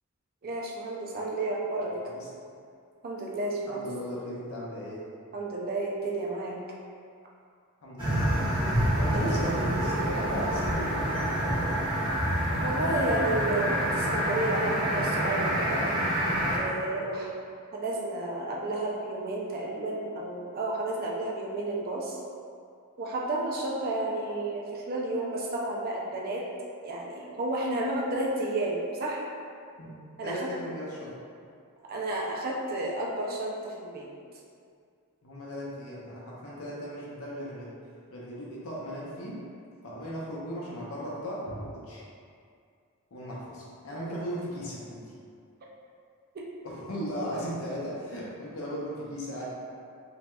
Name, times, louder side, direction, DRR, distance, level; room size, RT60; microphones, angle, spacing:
voice 1, 0.4-2.0 3.0-3.9 5.3-6.6 9.1-9.3 12.6-15.8 16.5-17.3 17.7-22.2 23.0-26.5 26.8-29.2 30.2-30.5 31.8-34.1 46.3-46.4, right 2 dB, 40° right, -3 dB, 0.4 m, -31 dB
voice 2, 1.8-2.3 3.7-5.0 7.8-11.7 16.9-17.1 29.8-29.9 30.2-31.1 35.2-37.7 38.1-39.4 39.8-42.0 43.1-45.0 46.6-49.5, equal, 65° left, -5 dB, 0.7 m, -37 dB
sound 1, 8.0-16.6, equal, 20° right, 0.8 m, -27 dB
3.0 x 2.8 x 2.2 m, 2.3 s
head